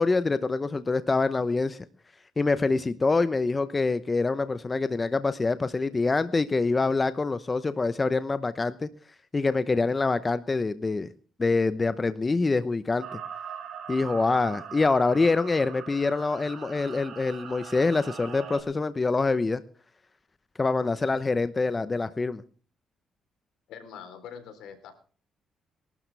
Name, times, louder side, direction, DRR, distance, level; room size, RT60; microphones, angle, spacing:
voice 1, 0.0-1.8 2.4-8.9 9.3-11.1 11.4-13.2 13.9-19.6 20.6-22.4, left 3 dB, 25° left, 13 dB, 0.9 m, -25 dB
sound 1, 13.0-18.6, right 7 dB, 65° right, 5.0 m, -41 dB
voice 2, 23.7-25.0, left 7 dB, 85° left, 9 dB, 3.8 m, -43 dB
23.5 x 12.5 x 3.5 m, 0.41 s
cardioid pair, 90°, 0 cm